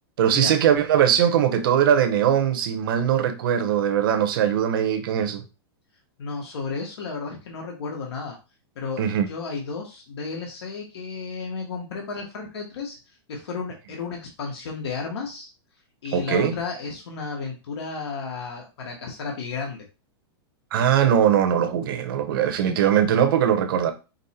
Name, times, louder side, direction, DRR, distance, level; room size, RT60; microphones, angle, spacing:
voice 1, 0.2-5.4 9.0-9.3 16.1-16.5 20.7-23.9, right 9 dB, 55° right, 0.8 m, -21 dB
voice 2, 6.2-8.4 8.7-15.5 16.0-19.9, left 4 dB, 75° left, 1.1 m, -33 dB
5.2 x 2.1 x 4.2 m
supercardioid pair, 165°, 14 cm